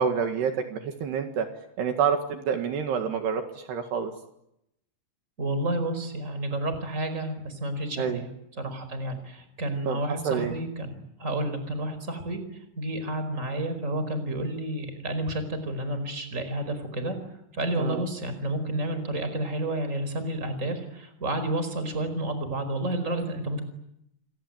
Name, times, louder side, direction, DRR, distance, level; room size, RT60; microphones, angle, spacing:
voice 1, 0.0-1.5 1.8-4.1 8.0-8.2 9.9-10.0 10.3-10.5 17.8-18.0, right 7 dB, 70° right, 6 dB, 3.8 m, -27 dB
voice 2, 5.4-8.3 8.6-10.9 11.2-17.2 17.5-23.6, right 1 dB, 15° right, 10 dB, 4.7 m, -30 dB
28.0 x 23.0 x 9.2 m, 0.81 s
omnidirectional pair, 5.1 m